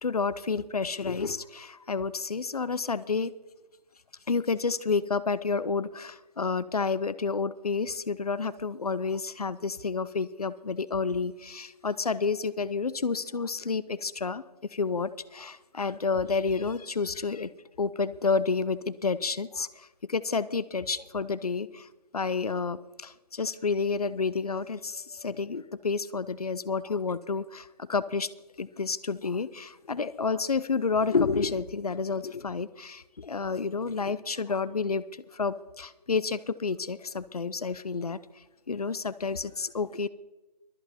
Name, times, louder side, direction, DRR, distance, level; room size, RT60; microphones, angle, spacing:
voice 1, 0.0-3.3 4.3-14.4 14.7-17.5 17.8-21.9 22.1-28.3 28.6-35.0 35.3-38.2 38.7-40.1, left 4 dB, 65° left, 17 dB, 0.8 m, -30 dB
23.0 x 8.0 x 4.3 m, 1.1 s
figure-of-eight pair, 165°, 21 cm